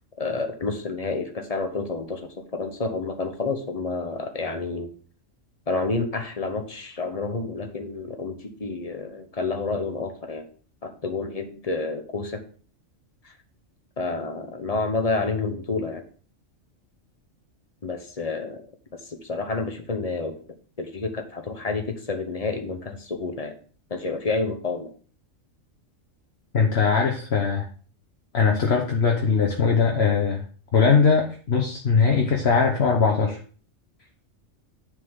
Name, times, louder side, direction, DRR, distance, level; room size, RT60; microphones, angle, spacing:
voice 1, 0.2-4.9 5.7-10.5 10.8-12.4 13.2-13.3 14.0-16.0 17.8-18.6 18.9-20.4 20.8-23.5 23.9-24.9, left 3 dB, 30° left, 6 dB, 1.1 m, -29 dB
voice 2, 26.5-27.7 28.3-30.4 30.7-33.4, left 5 dB, 55° left, 0 dB, 1.3 m, -20 dB
9.6 x 4.9 x 3.7 m, 0.41 s
omnidirectional pair, 1.3 m